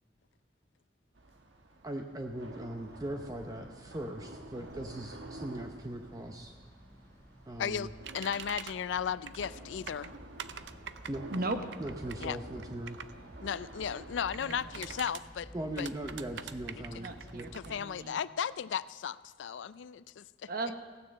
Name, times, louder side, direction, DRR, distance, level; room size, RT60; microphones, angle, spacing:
sound 1, 1.1-15.0, right 2 dB, 90° right, 1.3 m, -50 dB
voice 1, 1.8-6.5 7.5-7.9 11.1-11.3 11.8-13.0 15.5-17.5, right 1 dB, 20° right, 4 dB, 0.7 m, -40 dB
sound 2, 2.7-17.7, equal, 20° left, 6.1 m, -54 dB
voice 2, 7.6-7.9 8.1-10.1 12.2-12.4 13.4-15.5 15.8-15.9 17.5-20.5, left 8 dB, 85° left, 17 dB, 0.4 m, -35 dB
sound 3, 8.0-8.7 9.3-9.6 9.9-13.1 14.2-15.2 15.8-17.7, right 8 dB, 70° right, 0.5 m, -44 dB
voice 3, 11.3-11.6 14.4-14.6 16.9-18.2 20.5-20.7, right 2 dB, 55° right, 7 dB, 1.0 m, -36 dB
16.5 x 9.7 x 7.5 m, 1.5 s
head